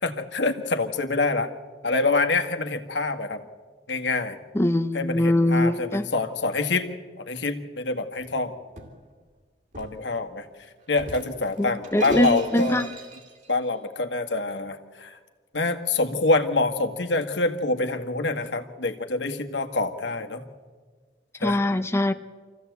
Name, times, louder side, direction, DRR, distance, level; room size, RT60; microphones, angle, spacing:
voice 1, 0.0-1.5 1.8-3.4 3.9-4.4 4.9-6.9 7.2-8.5 9.8-10.4 10.9-12.8 13.5-15.2 15.5-20.4 21.4-21.6, left 3 dB, 80° left, 6 dB, 1.7 m, -26 dB
voice 2, 4.5-6.1 11.6-12.9 21.4-22.1, left 1 dB, 15° left, 8 dB, 0.6 m, -22 dB
Shatter, 8.1-9.0 9.7-10.1 10.9-13.5, right 3 dB, 45° right, 2.6 m, -42 dB
26.0 x 15.5 x 8.2 m, 1.5 s
head